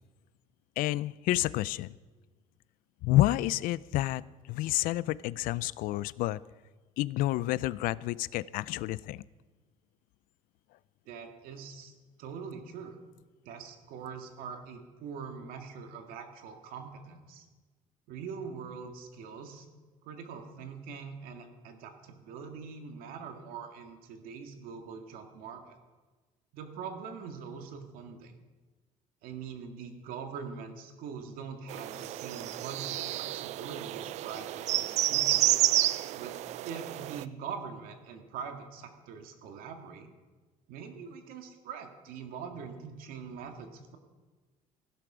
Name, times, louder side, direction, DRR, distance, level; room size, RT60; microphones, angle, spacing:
voice 1, 0.8-1.9 3.0-4.2 4.5-6.4 7.0-9.2, left 16 dB, 75° left, 20 dB, 0.4 m, -29 dB
voice 2, 11.1-11.9 12.2-13.0 13.4-17.5 18.1-19.7 20.0-25.8 26.5-28.4 29.2-35.7 36.1-36.3 36.6-40.1 40.7-44.0, right 6 dB, 90° right, 5 dB, 1.9 m, -43 dB
sound 1, 31.7-37.2, right 14 dB, 50° right, 0.4 m, -30 dB
16.0 x 11.5 x 5.0 m, 1.3 s
cardioid pair, 180°, 14 cm